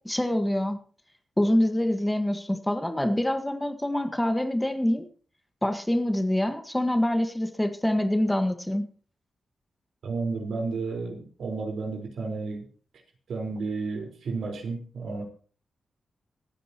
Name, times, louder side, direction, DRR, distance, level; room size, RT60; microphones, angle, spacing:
voice 1, 0.0-0.8 1.4-5.0 5.6-8.9, left 1 dB, 5° left, 6 dB, 1.5 m, -25 dB
voice 2, 10.0-12.6 13.3-15.2, right 4 dB, 85° right, 2 dB, 4.5 m, -32 dB
26.0 x 9.3 x 3.0 m, 0.41 s
wide cardioid pair, 160°, 0 cm